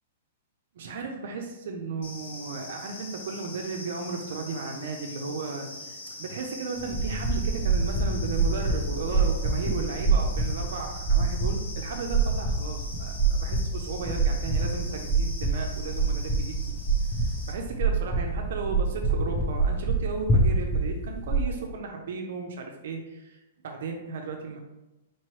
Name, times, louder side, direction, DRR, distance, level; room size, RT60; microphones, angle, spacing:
voice 1, 0.8-16.6 17.2-24.6, right 4 dB, 60° right, 3 dB, 0.5 m, -35 dB
sound 1, 2.0-17.5, left 2 dB, 75° left, 0.9 m, -42 dB
sound 2, 6.8-21.4, right 3 dB, 5° left, 0.6 m, -26 dB
4.4 x 3.0 x 3.1 m, 0.98 s
hypercardioid pair, 170°, 0 cm